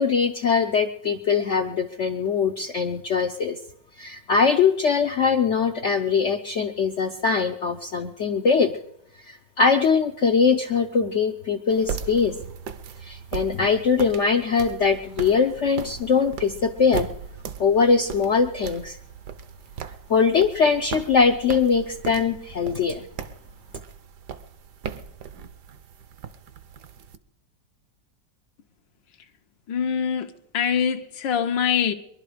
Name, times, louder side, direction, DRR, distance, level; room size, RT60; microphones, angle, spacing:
voice 1, 0.0-3.6 4.0-8.7 9.2-12.4 13.0-17.1 17.6-19.0 20.1-23.1, left 5 dB, 65° left, 6 dB, 0.7 m, -22 dB
sound 1, 11.7-27.2, right 7 dB, 70° right, 1.4 m, -38 dB
voice 2, 29.7-30.3 30.5-31.9, left 7 dB, 80° left, 5 dB, 1.6 m, -23 dB
22.5 x 11.5 x 5.0 m, 0.76 s
omnidirectional pair, 2.0 m